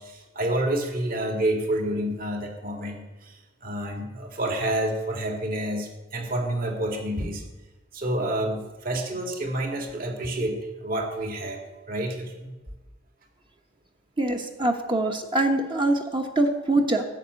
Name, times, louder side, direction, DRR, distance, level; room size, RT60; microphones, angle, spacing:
voice 1, 0.0-7.4 7.9-11.6 11.9-12.5, right 1 dB, 45° right, 3 dB, 2.2 m, -29 dB
voice 2, 14.2-17.0, right 2 dB, 25° right, 3 dB, 1.0 m, -24 dB
13.5 x 6.7 x 9.4 m, 1.1 s
head